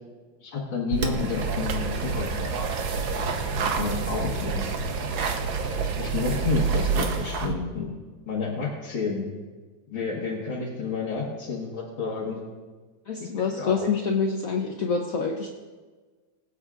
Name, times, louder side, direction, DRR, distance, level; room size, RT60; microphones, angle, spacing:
voice 1, 0.4-2.5 2.9-3.0 3.6-4.7 6.0-7.9 8.3-9.2 9.9-12.4 13.2-13.9, left 4 dB, 80° left, -5 dB, 2.3 m, -30 dB
sound 1, 0.9-7.5, right 5 dB, 75° right, 1.6 m, -28 dB
voice 2, 13.1-15.5, left 5 dB, 60° left, 1 dB, 1.0 m, -26 dB
23.5 x 8.1 x 2.4 m, 1.4 s
omnidirectional pair, 2.1 m